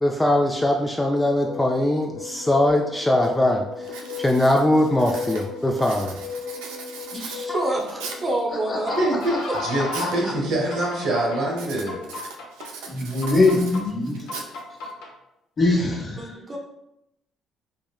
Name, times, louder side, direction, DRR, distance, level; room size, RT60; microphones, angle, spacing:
voice 1, 0.0-6.2, left 1 dB, 10° left, 1 dB, 0.3 m, -21 dB
sound 1, 1.4-10.2 10.7-11.4 11.9-12.7 13.2-13.8 14.3-15.1, left 4 dB, 75° left, 0.6 m, -35 dB
Writing, 2.7-2.8 3.2-3.5 3.8-8.4 9.0-10.2 10.5-10.9 11.5-14.9, right 4 dB, 90° right, 0.3 m, -39 dB
voice 2, 7.1-8.9 9.5-9.6 16.2-16.6, right 2 dB, 35° right, 0 dB, 0.7 m, -28 dB
voice 3, 9.0-12.0, right 1 dB, 70° right, -2 dB, 0.9 m, -25 dB
voice 4, 10.0-10.3 12.9-14.3 15.6-16.3, left 2 dB, 40° left, -1 dB, 0.9 m, -22 dB
3.5 x 2.0 x 2.3 m, 0.85 s
supercardioid pair, 70°, 0 cm